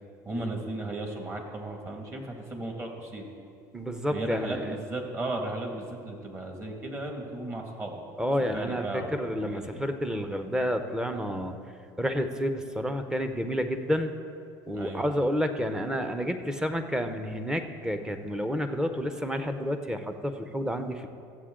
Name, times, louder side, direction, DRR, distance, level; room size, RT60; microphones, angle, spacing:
voice 1, 0.2-3.3 4.1-8.0 8.5-9.8 14.7-15.1, right 2 dB, 25° right, 1 dB, 2.0 m, -35 dB
voice 2, 3.7-4.7 8.2-11.5 12.0-14.1 14.7-21.1, equal, 5° right, 7 dB, 0.8 m, -30 dB
14.5 x 7.8 x 3.8 m, 2.4 s
supercardioid pair, 100°, 9 cm